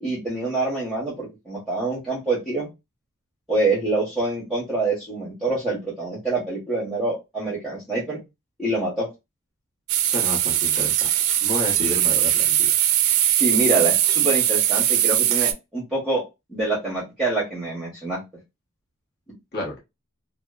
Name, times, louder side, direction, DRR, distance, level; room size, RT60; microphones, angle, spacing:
voice 1, 0.0-2.7 3.5-8.2 8.6-9.1 13.3-16.2 16.5-18.2, right 2 dB, ahead, -6 dB, 0.8 m, -26 dB
sound 1, 9.9-15.5, right 11 dB, 75° right, 0.4 m, -20 dB
voice 2, 10.0-11.1 11.4-12.7 19.5-19.8, left 1 dB, 50° left, -1 dB, 0.9 m, -31 dB
2.8 x 2.0 x 2.2 m, 0.23 s
head